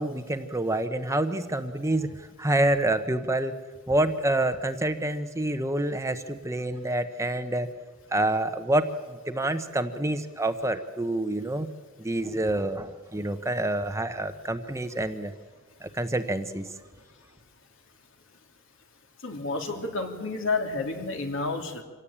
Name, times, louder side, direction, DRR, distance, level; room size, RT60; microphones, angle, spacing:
voice 1, 0.0-3.5 3.9-7.7 8.1-8.9 9.3-11.7 12.0-15.3 15.8-16.7, right 1 dB, 15° right, 9 dB, 0.9 m, -27 dB
voice 2, 19.2-21.8, left 3 dB, 65° left, 4 dB, 3.0 m, -30 dB
25.5 x 17.0 x 8.7 m, 1.4 s
head